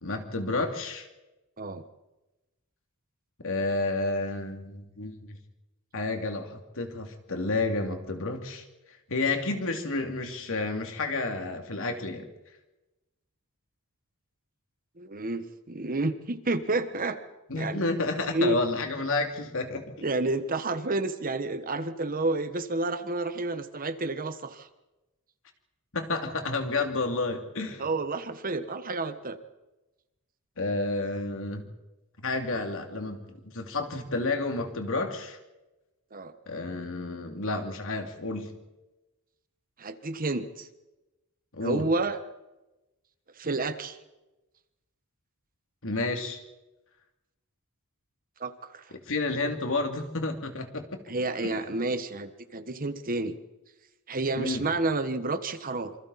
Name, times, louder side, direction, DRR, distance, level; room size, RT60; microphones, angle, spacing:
voice 1, 0.0-1.1 3.4-5.4 5.9-8.6 9.1-12.3 17.5-20.0 25.9-27.9 30.6-31.7 32.2-35.4 36.5-38.5 41.5-41.9 45.8-46.4 49.1-51.0 51.4-51.6 54.4-54.6, left 3 dB, 60° left, 4 dB, 2.8 m, -30 dB
voice 2, 15.0-17.2 17.5-17.8 18.3-18.6 20.0-24.7 27.8-29.4 36.1-36.3 39.8-40.7 41.6-42.2 43.4-44.0 48.4-48.9 51.1-53.4 54.1-56.0, right 2 dB, 40° right, 10 dB, 1.3 m, -30 dB
26.5 x 26.0 x 4.3 m, 1.0 s
head